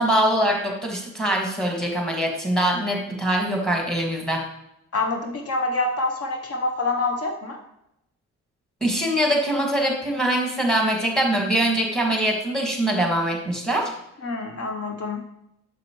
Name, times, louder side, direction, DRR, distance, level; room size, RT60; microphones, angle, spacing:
voice 1, 0.0-4.4 8.8-13.9, right 1 dB, ahead, 0 dB, 1.9 m, -23 dB
voice 2, 4.9-7.6 14.2-15.2, left 2 dB, 50° left, 4 dB, 0.9 m, -26 dB
7.5 x 6.6 x 3.1 m, 0.82 s
cardioid pair, 90°, 30 cm